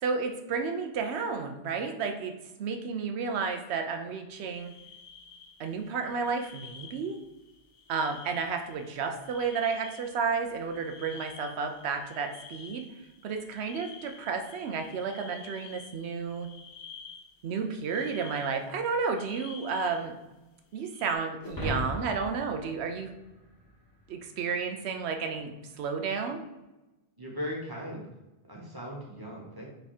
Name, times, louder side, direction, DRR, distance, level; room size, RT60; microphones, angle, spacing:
voice 1, 0.0-4.7 5.6-7.2 7.9-12.8 13.2-16.5 17.4-20.2 20.7-23.2 24.1-26.4, right 5 dB, 85° right, 5 dB, 0.9 m, -32 dB
sound 1, 4.3-18.8 19.1-20.1 20.7-21.2, left 6 dB, 65° left, 0.8 m, -50 dB
sound 2, 21.4-23.9, left 1 dB, 20° left, 0.9 m, -37 dB
voice 2, 27.2-28.1 28.5-29.7, equal, 25° right, -3 dB, 0.9 m, -38 dB
3.5 x 3.3 x 4.2 m, 1.0 s
omnidirectional pair, 1.1 m